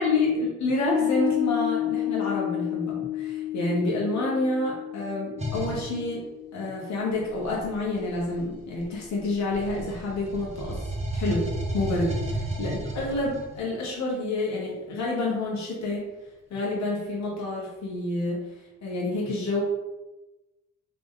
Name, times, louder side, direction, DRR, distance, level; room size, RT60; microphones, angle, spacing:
voice 1, 0.0-6.2 6.5-10.8 11.1-12.1 12.6-16.0 16.5-18.5 18.8-19.6, left 2 dB, 65° left, -4 dB, 1.1 m, -28 dB
Piano, 0.9-7.6, left 12 dB, 35° left, 0.6 m, -31 dB
sound 1, 5.4-5.9 7.2-9.1 9.5-13.6, right 1 dB, 20° right, 0.8 m, -33 dB
3.1 x 3.0 x 3.7 m, 1.1 s
cardioid pair, 90°, 30 cm